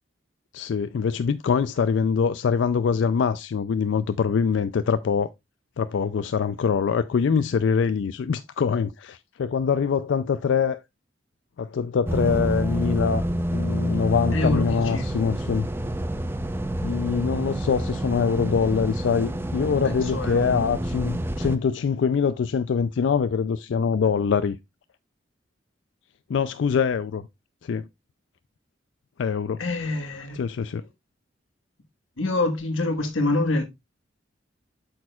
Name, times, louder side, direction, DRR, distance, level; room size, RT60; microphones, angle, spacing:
voice 1, 0.5-5.3 5.8-10.8 11.6-15.7 16.8-24.6 26.3-27.2 27.6-27.8 29.2-29.6 30.3-30.8, left 6 dB, 65° left, 0.3 m, -24 dB
sound 1, 12.1-21.6, right 1 dB, 10° right, 0.5 m, -28 dB
voice 2, 14.3-14.6 14.9-15.1 19.8-20.7 29.6-30.4 32.2-33.6, left 2 dB, 85° left, 1.4 m, -26 dB
8.5 x 6.3 x 2.3 m
head